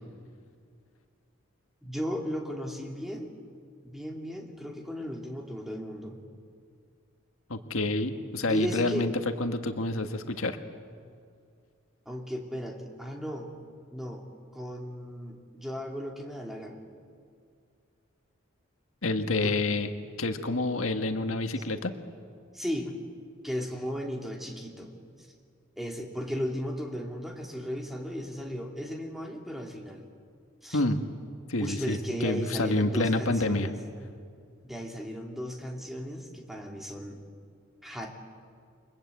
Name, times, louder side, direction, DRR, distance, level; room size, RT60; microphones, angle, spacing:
voice 1, 1.8-3.3 3.8-6.2 8.5-9.1 12.1-13.5 13.9-14.2 14.5-16.8 19.4-19.6 22.5-22.9 23.4-24.9 25.2-25.3 25.8-30.1 30.6-30.8 31.6-33.7 34.6-37.2 37.8-38.1, equal, ahead, 1 dB, 2.8 m, -35 dB
voice 2, 7.5-9.1 9.4-10.6 19.0-21.9 30.7-31.0 31.5-33.7, left 2 dB, 80° left, 7 dB, 1.6 m, -28 dB
29.5 x 23.0 x 8.5 m, 2.3 s
head